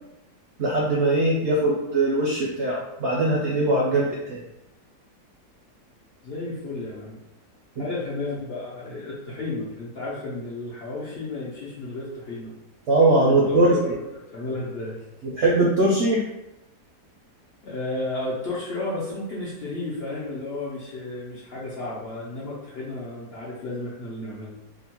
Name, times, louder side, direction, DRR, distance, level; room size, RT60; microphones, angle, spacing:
voice 1, 0.6-4.4 7.8-7.9 12.9-13.7 15.2-16.2, right 2 dB, 75° right, -4 dB, 0.6 m, -21 dB
voice 2, 6.2-7.2 7.8-12.5 13.3-13.9 14.3-15.0 17.6-24.5, left 2 dB, 75° left, -6 dB, 0.5 m, -32 dB
2.8 x 2.2 x 2.8 m, 0.89 s
omnidirectional pair, 1.7 m